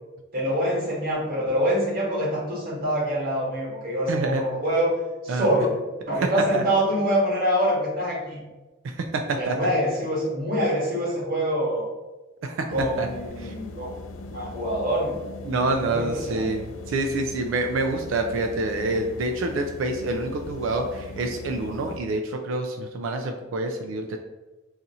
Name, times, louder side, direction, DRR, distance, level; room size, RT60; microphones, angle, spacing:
voice 1, 0.3-4.9 5.2-5.7 6.1-8.4 9.3-11.9 12.7-13.9 14.3-15.1 15.7-16.5, equal, 45° right, -5 dB, 1.2 m, -25 dB
voice 2, 4.1-4.4 5.3-5.5 6.5-6.7 8.8-9.6 12.4-12.6 13.0-13.1 13.4-13.5 15.5-24.2, right 2 dB, 75° right, 4 dB, 0.3 m, -27 dB
sound 1, 12.7-22.0, left 2 dB, 70° left, 0.3 m, -40 dB
2.6 x 2.4 x 4.0 m, 1.2 s
head